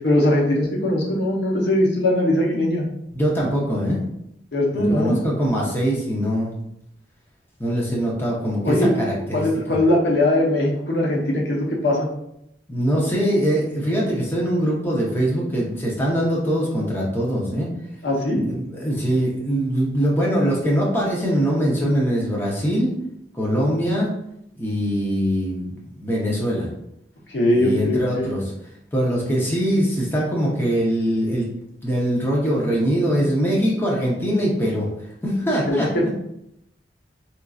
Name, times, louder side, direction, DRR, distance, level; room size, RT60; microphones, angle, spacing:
voice 1, 0.0-2.9 4.5-5.2 8.6-9.1 9.3-12.1 18.0-18.4 27.3-28.3 35.7-36.1, left 1 dB, 80° left, -3 dB, 0.9 m, -20 dB
voice 2, 3.1-4.0 4.7-6.5 7.6-9.5 12.7-17.7 18.3-22.9 23.3-24.1 24.6-25.7 26.0-26.7 27.5-28.4 28.9-31.5 31.8-34.9 35.2-36.1, equal, 10° left, -4 dB, 0.7 m, -22 dB
4.4 x 2.5 x 2.4 m, 0.79 s
head